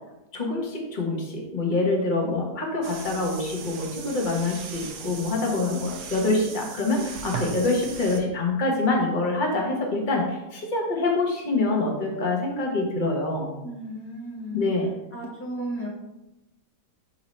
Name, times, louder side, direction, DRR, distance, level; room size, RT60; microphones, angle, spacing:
voice 1, 0.3-13.5 14.5-14.9, left 2 dB, 30° left, 0 dB, 1.2 m, -25 dB
sound 1, 2.8-8.2, right 6 dB, 60° right, 0.9 m, -38 dB
voice 2, 13.6-14.7 15.1-15.9, right 1 dB, 10° left, -2 dB, 0.9 m, -34 dB
7.3 x 2.9 x 5.3 m, 0.97 s
omnidirectional pair, 1.8 m